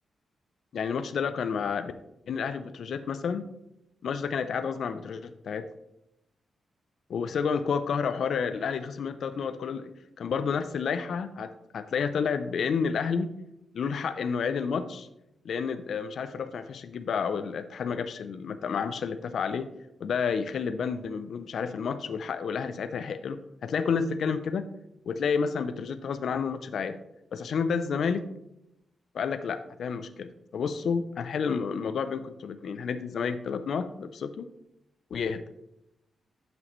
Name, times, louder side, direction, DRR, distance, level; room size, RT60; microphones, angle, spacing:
voice 1, 0.7-1.9 2.3-3.5 4.0-5.7 7.1-9.9 10.2-13.4 13.7-15.1 15.4-19.7 20.0-24.7 25.1-27.0 27.3-28.3 29.1-34.5 35.1-35.4, left 6 dB, 60° left, 10 dB, 0.4 m, -30 dB
10.5 x 5.9 x 3.0 m, 0.85 s
wide cardioid pair, 175°, 0 cm